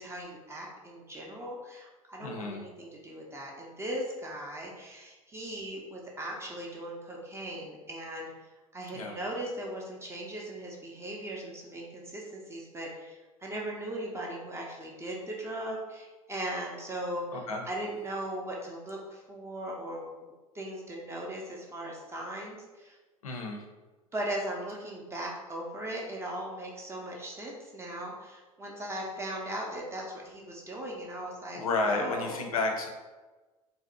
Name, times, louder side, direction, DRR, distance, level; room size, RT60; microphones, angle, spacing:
voice 1, 0.0-8.3 8.7-23.0 24.1-32.5, right 1 dB, 15° right, -2 dB, 0.4 m, -38 dB
voice 2, 2.2-2.6 8.9-9.2 17.3-17.6 23.2-23.6 31.5-32.9, left 3 dB, 75° left, 2 dB, 0.5 m, -31 dB
2.6 x 2.1 x 2.5 m, 1.2 s
figure-of-eight pair, 75°, 18 cm